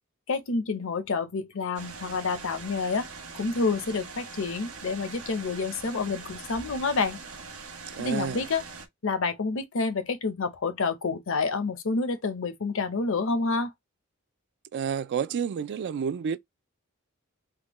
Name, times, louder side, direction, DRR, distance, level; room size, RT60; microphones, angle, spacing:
voice 1, 0.3-3.1 3.3-7.2 8.0-8.6 9.0-13.7, left 4 dB, 65° left, 0.6 m, -28 dB
sound 1, 1.7-8.9, right 4 dB, 85° right, 0.9 m, -42 dB
voice 2, 8.0-8.4 14.7-16.4, right 7 dB, 55° right, 0.3 m, -30 dB
3.6 x 2.2 x 2.9 m
head